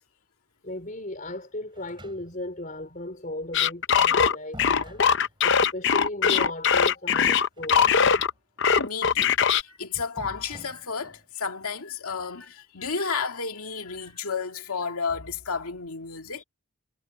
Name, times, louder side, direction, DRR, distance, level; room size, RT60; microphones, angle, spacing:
voice 1, 0.6-7.9 16.3-16.4, left 1 dB, 35° left, 4.5 m, -36 dB
sound 1, 1.7-2.6 3.9-5.7 7.5-8.4 8.6-8.7 10.2-11.3, right 1 dB, 20° right, 7.1 m, -46 dB
sound 2, 3.5-8.3 8.6-9.6, left 7 dB, 50° left, 0.7 m, -21 dB
voice 2, 8.8-16.4, left 5 dB, 80° left, 2.3 m, -32 dB
head